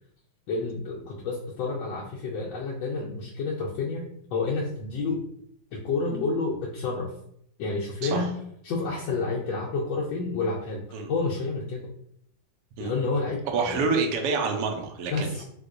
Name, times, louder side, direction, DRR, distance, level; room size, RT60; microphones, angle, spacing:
voice 1, 0.5-5.2 5.7-7.1 7.6-8.3 8.6-11.8 12.8-13.9 15.1-15.4, left 3 dB, 75° left, -4 dB, 1.2 m, -29 dB
voice 2, 13.5-15.4, right 4 dB, 80° right, 3 dB, 0.8 m, -27 dB
3.5 x 3.0 x 2.5 m, 0.72 s
omnidirectional pair, 2.2 m